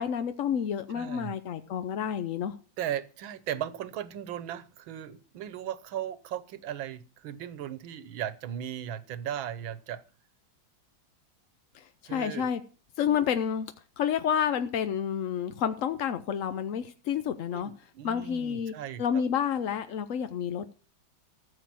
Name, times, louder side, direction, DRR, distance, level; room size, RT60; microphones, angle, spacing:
voice 1, 0.0-2.5 11.7-12.6 13.0-17.7 18.0-20.6, left 8 dB, 65° left, 0.8 m, -30 dB
voice 2, 0.9-1.3 2.8-10.0 12.1-12.5 13.0-13.2 17.5-19.2, right 10 dB, 80° right, 1.7 m, -37 dB
14.5 x 7.1 x 6.1 m
omnidirectional pair, 2.2 m